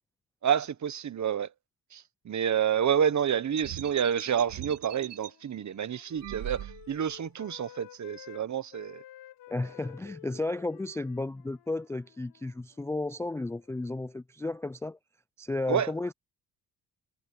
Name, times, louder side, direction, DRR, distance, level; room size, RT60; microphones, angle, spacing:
voice 1, 0.4-1.5 1.9-9.0 15.7-15.9, right 8 dB, 45° right, 1.1 m, -29 dB
Wind instrument woodwind instrument, 3.5-8.4 8.7-14.0, left 13 dB, 85° left, 4.5 m, -53 dB
sound 1, 3.6-5.3 6.2-7.1, right 12 dB, 85° right, 2.6 m, -41 dB
voice 2, 9.5-15.0 15.4-16.1, left 2 dB, 10° left, 0.3 m, -33 dB
cardioid pair, 90°, 40 cm